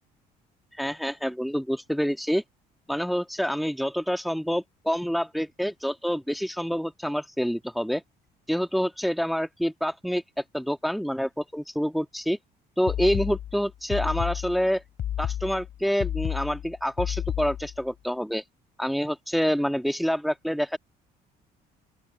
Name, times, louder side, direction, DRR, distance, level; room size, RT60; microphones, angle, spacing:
voice 1, 0.8-2.4 2.9-8.0 8.5-12.4 12.8-14.8 15.2-18.4 18.8-20.8, equal, ahead, 1.6 m, -27 dB
sound 1, 12.9-17.8, left 11 dB, 60° left, 6.8 m, -31 dB
open air
cardioid pair, 110°, 17 cm